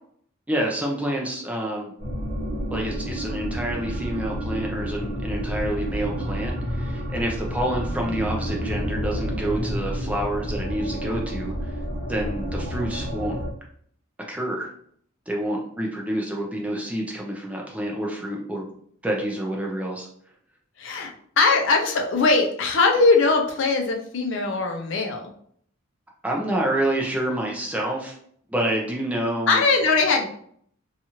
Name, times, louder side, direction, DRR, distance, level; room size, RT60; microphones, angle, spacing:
voice 1, 0.5-1.9 2.7-11.8 12.1-13.4 14.3-14.7 15.3-18.7 19.0-20.1 26.2-28.2 28.5-29.6, right 1 dB, 5° right, -1 dB, 0.4 m, -28 dB
sound 1, 2.0-13.5, equal, 25° right, 0.8 m, -30 dB
voice 2, 20.8-21.1 21.4-25.3 29.5-30.3, left 3 dB, 60° left, 3 dB, 0.4 m, -20 dB
2.8 x 2.4 x 2.8 m, 0.64 s
head